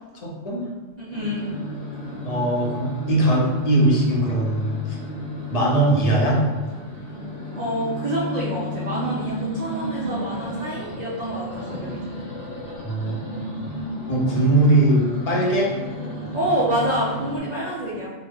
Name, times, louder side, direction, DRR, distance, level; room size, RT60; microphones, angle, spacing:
voice 1, 0.2-0.7 2.2-5.0 5.5-6.4 12.8-13.6 14.1-15.7, right 1 dB, 40° left, -4 dB, 0.6 m, -20 dB
voice 2, 1.0-1.6 7.5-12.0 16.3-18.1, right 1 dB, 45° right, -7 dB, 0.5 m, -27 dB
Starting bike engine after long time not in use, 1.1-17.4, left 1 dB, 75° left, 1.3 m, -33 dB
3.3 x 2.1 x 3.4 m, 1.3 s
omnidirectional pair, 1.3 m